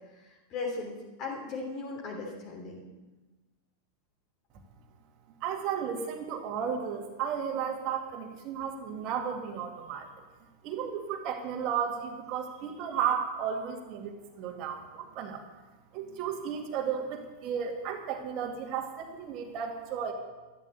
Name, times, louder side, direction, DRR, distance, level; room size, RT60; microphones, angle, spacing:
voice 1, 0.1-2.8, left 3 dB, 35° left, -1 dB, 3.4 m, -38 dB
voice 2, 5.4-10.1 10.6-15.4 15.9-20.1, right 7 dB, 40° right, 2 dB, 2.2 m, -34 dB
13.0 x 12.5 x 6.9 m, 1.2 s
figure-of-eight pair, 90°, 0 cm